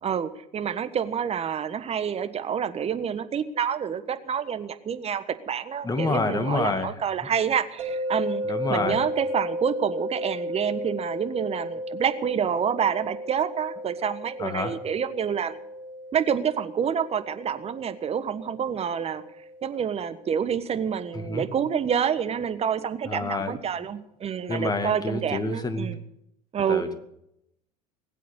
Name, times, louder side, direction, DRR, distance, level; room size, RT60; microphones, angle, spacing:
voice 1, 0.0-8.4 8.7-15.6 16.1-19.2 19.6-26.0 26.5-26.8, right 8 dB, 30° right, 11 dB, 1.4 m, -28 dB
voice 2, 5.8-7.0 8.5-9.0 14.4-14.8 21.1-21.5 23.1-23.6 24.5-25.9 26.7-26.9, left 3 dB, 20° left, 8 dB, 2.3 m, -28 dB
sound 1, 7.8-20.9, equal, 60° right, 5.4 m, -35 dB
20.5 x 8.4 x 8.3 m, 0.79 s
hypercardioid pair, 75°, 19 cm